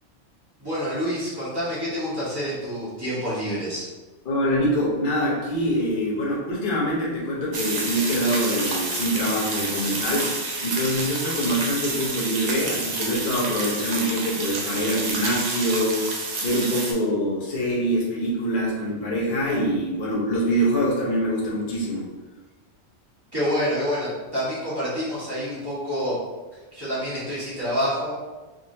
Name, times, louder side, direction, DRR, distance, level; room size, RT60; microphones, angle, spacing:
voice 1, 0.6-3.8 23.3-26.1 26.7-28.2, equal, 20° right, -10 dB, 1.5 m, -27 dB
voice 2, 4.2-22.1, equal, 45° left, -5 dB, 1.1 m, -25 dB
sound 1, 7.5-16.9, right 3 dB, 45° right, 0.6 m, -29 dB
3.7 x 3.4 x 2.7 m, 1.2 s
omnidirectional pair, 1.3 m